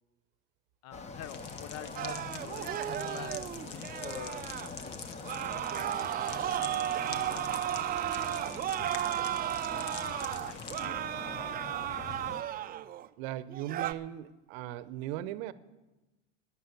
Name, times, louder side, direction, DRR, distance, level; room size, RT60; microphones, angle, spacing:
voice 1, 0.8-8.8 9.7-9.8 10.2-10.6 11.1-11.2 11.7-12.2, left 11 dB, 45° left, 17 dB, 0.8 m, -49 dB
sound 1, 0.9-12.4, left 4 dB, 20° left, 0.9 m, -44 dB
sound 2, 1.2-10.8, left 6 dB, 80° left, 1.3 m, -46 dB
sound 3, 2.0-4.7 5.2-13.1 13.5-13.9, right 12 dB, 25° right, 0.5 m, -34 dB
voice 2, 13.2-15.5, right 13 dB, 55° right, 17 dB, 0.8 m, -38 dB
11.5 x 10.0 x 7.1 m, 1.1 s
hypercardioid pair, 95°, 36 cm